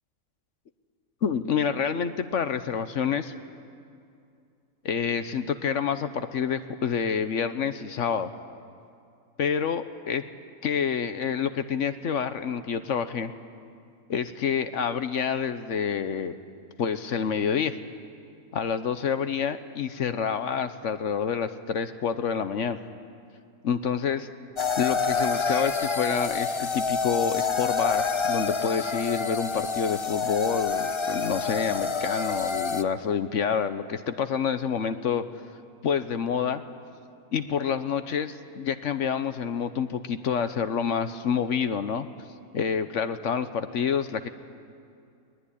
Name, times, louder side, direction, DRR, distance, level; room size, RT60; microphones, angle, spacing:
voice 1, 1.2-3.3 4.8-8.3 9.4-10.2 10.6-13.3 14.1-16.3 16.8-17.7 18.5-22.8 23.6-24.3 24.8-35.2 35.8-36.6 37.3-42.1 42.5-44.3, left 7 dB, 60° left, 11 dB, 1.1 m, -28 dB
sound 1, 24.6-32.8, left 5 dB, 40° left, 0.4 m, -28 dB
21.5 x 19.5 x 10.0 m, 2.4 s
omnidirectional pair, 1.6 m